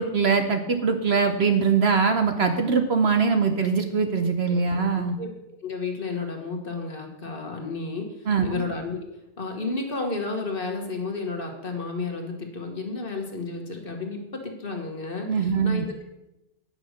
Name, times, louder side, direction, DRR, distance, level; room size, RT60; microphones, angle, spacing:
voice 1, 0.0-5.2 8.3-8.6 15.3-15.9, right 5 dB, 55° right, 6 dB, 0.9 m, -22 dB
voice 2, 4.7-5.3 5.6-9.1 9.4-16.0, left 3 dB, 40° left, 2 dB, 1.6 m, -32 dB
9.7 x 6.3 x 6.5 m, 0.92 s
omnidirectional pair, 1.4 m